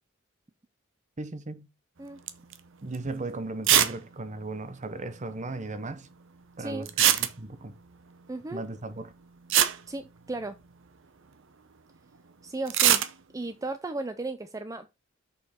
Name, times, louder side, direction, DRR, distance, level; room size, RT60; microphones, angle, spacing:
voice 1, 1.2-1.7 2.8-6.1 6.6-7.7 8.5-9.1, right 2 dB, 35° right, 0.8 m, -37 dB
sound 1, 2.3-2.6 2.9-3.0 3.6-4.0 4.2-4.3 4.5-4.6 6.9-7.7 9.1-9.2 9.5-10.7 12.7-13.1, right 11 dB, 65° right, 0.8 m, -22 dB
voice 2, 8.3-8.6 9.9-10.6 12.4-13.0 13.3-14.9, right 2 dB, 15° right, 0.5 m, -35 dB
6.7 x 5.5 x 4.2 m
head